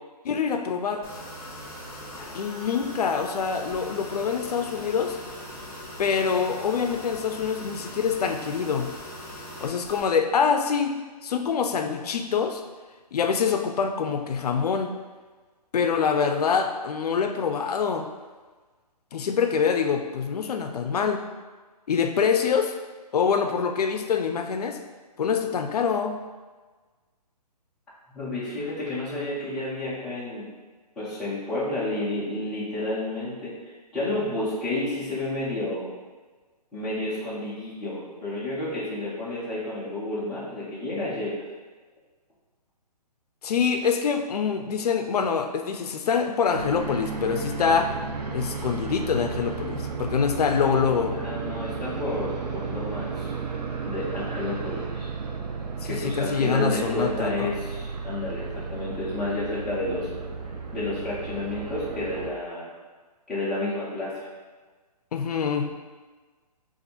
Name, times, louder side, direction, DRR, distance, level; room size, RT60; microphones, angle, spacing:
voice 1, 0.2-1.1 2.3-5.2 6.0-9.0 9.6-11.0 11.2-12.6 13.1-14.9 15.7-18.1 19.1-21.2 21.9-22.7 23.1-24.8 25.2-26.3 43.4-47.9 48.3-51.2 55.8-57.5 65.1-65.7, left 6 dB, 65° left, 6 dB, 0.4 m, -25 dB
sound 1, 1.0-10.0, left 1 dB, 15° left, 1.0 m, -40 dB
voice 2, 28.1-30.5 31.0-33.5 33.9-35.9 36.7-41.4 51.1-53.3 53.9-55.1 55.8-60.1 60.7-62.7 63.3-64.1, left 1 dB, ahead, -12 dB, 0.3 m, -30 dB
sound 2, 46.5-62.3, right 5 dB, 75° right, 0.6 m, -33 dB
2.6 x 2.5 x 4.1 m, 1.3 s
hypercardioid pair, 150°, 21 cm